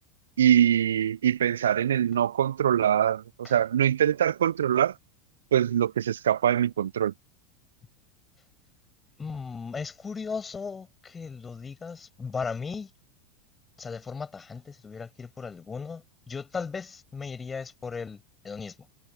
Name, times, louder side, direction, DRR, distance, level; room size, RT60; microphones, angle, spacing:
voice 1, 0.4-4.9 5.5-7.1, right 10 dB, 70° right, 0.6 m, -23 dB
voice 2, 9.2-12.9 13.8-18.8, left 5 dB, 20° left, 6.6 m, -37 dB
figure-of-eight pair, 85°, 0 cm